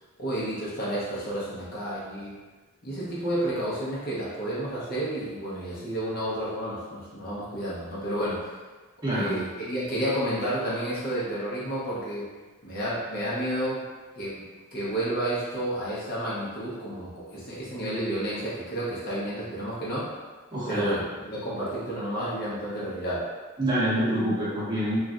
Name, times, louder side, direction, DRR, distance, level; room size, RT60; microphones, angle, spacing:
voice 1, 0.2-2.3 2.8-8.5 9.1-12.3 12.6-13.8 14.1-20.1 20.6-23.3, right 1 dB, 45° left, -8 dB, 0.8 m, -31 dB
voice 2, 9.0-9.4 20.5-21.0 23.6-25.0, right 1 dB, 20° right, -10 dB, 0.8 m, -26 dB
3.0 x 2.4 x 2.5 m, 1.3 s
head